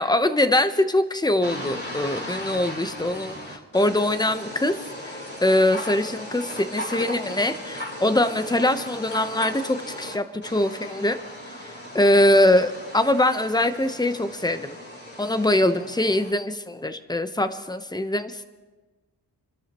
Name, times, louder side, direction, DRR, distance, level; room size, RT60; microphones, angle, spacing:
voice 1, 0.0-4.8 5.0-11.2 11.6-14.8 15.2-18.5, left 1 dB, 10° left, 10 dB, 0.9 m, -23 dB
sound 1, 1.4-10.1 10.4-16.3, equal, 25° left, 4.3 m, -37 dB
28.5 x 13.0 x 3.0 m, 1.2 s
wide cardioid pair, 75°, 42 cm